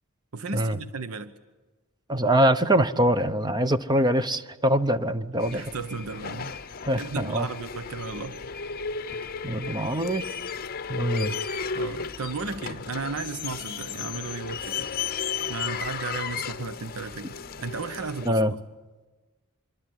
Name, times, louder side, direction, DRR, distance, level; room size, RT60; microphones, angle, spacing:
voice 1, 0.3-1.3 5.5-6.5 6.9-8.4 11.1-11.3 11.7-14.9 15.5-18.6, right 4 dB, 80° right, 12 dB, 0.9 m, -35 dB
voice 2, 2.1-5.6 6.9-7.5 9.4-10.3 10.9-11.3 18.2-18.5, right 1 dB, 20° right, 11 dB, 0.9 m, -23 dB
sound 1, 5.4-18.3, left 6 dB, 45° left, 0.8 m, -34 dB
25.5 x 23.0 x 9.3 m, 1.2 s
head